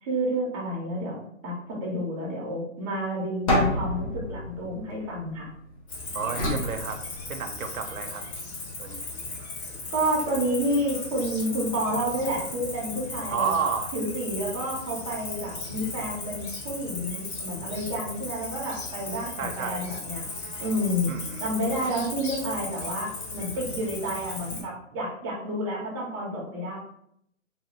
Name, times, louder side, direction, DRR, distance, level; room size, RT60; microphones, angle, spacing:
voice 1, 0.0-5.5 9.9-13.5 13.9-20.2 20.6-21.1 21.4-26.8, equal, 20° right, -4 dB, 0.7 m, -30 dB
sound 1, 3.5-5.7 6.3-7.7, left 1 dB, 25° left, 0.6 m, -28 dB
Cricket, 5.9-24.6, left 3 dB, 50° left, 1.3 m, -37 dB
voice 2, 6.1-7.0 7.3-8.3 8.8-9.1 9.4-9.5 13.3-13.9 19.4-19.9 21.1-21.5, right 6 dB, 90° right, 5 dB, 0.6 m, -31 dB
2.7 x 2.6 x 2.9 m, 0.71 s
hypercardioid pair, 140°, 41 cm